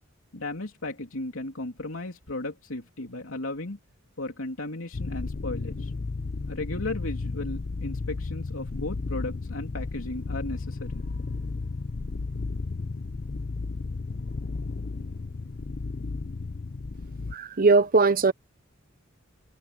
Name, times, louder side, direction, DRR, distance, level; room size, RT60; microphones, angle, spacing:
voice 1, 0.3-3.8 4.2-5.9 6.5-11.0, left 2 dB, 85° left, 3.1 m, -35 dB
sound 1, 4.9-17.4, left 3 dB, 50° left, 0.6 m, -33 dB
voice 2, 17.3-18.3, right 4 dB, 45° right, 0.9 m, -20 dB
open air
head